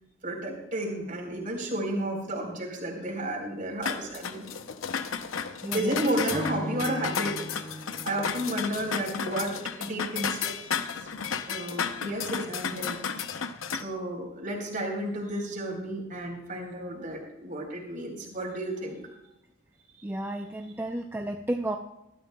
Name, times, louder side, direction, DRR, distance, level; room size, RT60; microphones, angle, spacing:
voice 1, 0.2-4.5 5.7-7.5 8.0-10.5 11.5-13.0 13.8-19.0, right 1 dB, 40° right, 0 dB, 3.9 m, -32 dB
sound 1, 3.8-13.8, left 6 dB, 80° left, 0.7 m, -33 dB
voice 2, 5.6-6.1 20.0-21.8, right 1 dB, 10° right, 3 dB, 0.5 m, -32 dB
Acoustic guitar / Strum, 6.3-9.7, equal, 15° left, 1.7 m, -39 dB
21.5 x 13.0 x 2.3 m, 0.89 s
head